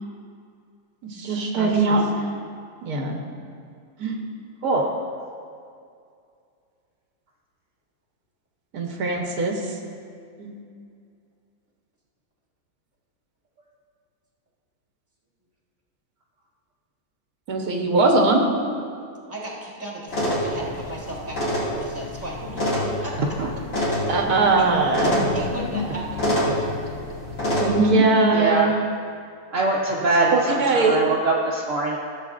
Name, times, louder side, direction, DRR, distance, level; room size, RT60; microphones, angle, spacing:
voice 1, 1.0-2.1 2.8-3.2 4.0-4.2 8.7-9.5 10.4-10.5 17.5-18.4 24.1-25.3 27.6-28.7 30.3-31.0, right 3 dB, 90° right, 1 dB, 1.5 m, -20 dB
voice 2, 19.3-23.4 24.6-24.7 25.3-26.9, right 2 dB, 10° right, -4 dB, 1.5 m, -36 dB
sound 1, 20.1-27.7, left 1 dB, 60° left, 2.6 m, -26 dB
voice 3, 28.3-28.7 29.5-32.0, right 2 dB, 60° right, -4 dB, 1.1 m, -22 dB
14.5 x 7.4 x 2.5 m, 2.3 s
omnidirectional pair, 1.6 m